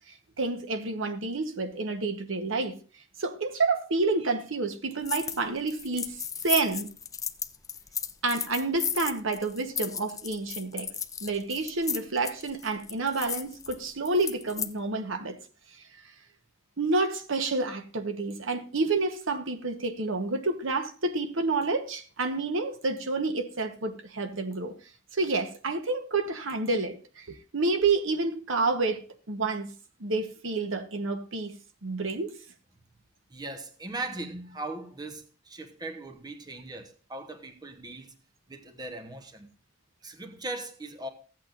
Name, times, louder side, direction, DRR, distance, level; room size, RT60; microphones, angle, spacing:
voice 1, 0.4-2.8 3.2-6.2 6.4-6.9 8.2-10.9 11.2-15.4 16.8-24.7 25.1-29.0 29.3-29.7 30.0-31.6 31.8-32.4, right 3 dB, 70° right, 1.1 m, -29 dB
sound 1, 5.0-5.4 5.7-14.7, left 7 dB, 15° left, 0.5 m, -35 dB
voice 2, 33.3-38.1 38.5-39.5 40.0-41.1, right 2 dB, 20° right, 1.0 m, -39 dB
15.5 x 8.4 x 2.5 m
head